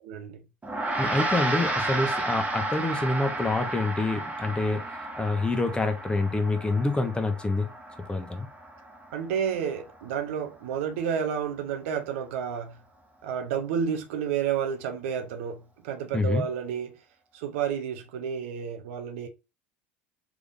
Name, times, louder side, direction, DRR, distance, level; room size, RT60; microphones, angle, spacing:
voice 1, 0.0-0.4 9.1-12.8 13.2-17.0 17.3-19.3, right 7 dB, 75° right, 0.7 m, -30 dB
Gong, 0.6-10.2, right 2 dB, 20° right, 1.2 m, -32 dB
voice 2, 1.0-4.8 5.2-7.7 8.1-8.5 16.1-16.4, left 2 dB, 15° left, 0.9 m, -27 dB
3.5 x 3.5 x 2.5 m
hypercardioid pair, 80°, 7 cm